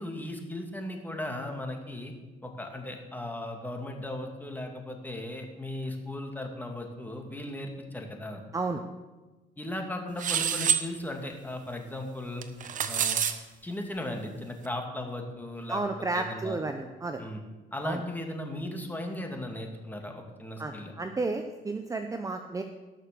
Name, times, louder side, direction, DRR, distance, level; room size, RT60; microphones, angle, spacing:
voice 1, 0.0-2.1 2.4-8.4 9.6-12.5 12.9-13.2 13.6-15.8 16.1-16.6 17.2-17.4 17.7-20.9, left 1 dB, 10° left, 3 dB, 2.3 m, -37 dB
sound 1, 10.2-10.8 12.4-13.3, right 8 dB, 50° right, 1.1 m, -27 dB
voice 2, 15.7-17.2 17.8-18.0 20.6-22.6, right 3 dB, 20° right, 6 dB, 0.8 m, -32 dB
18.0 x 6.6 x 6.8 m, 1.2 s
cardioid pair, 110°, 17 cm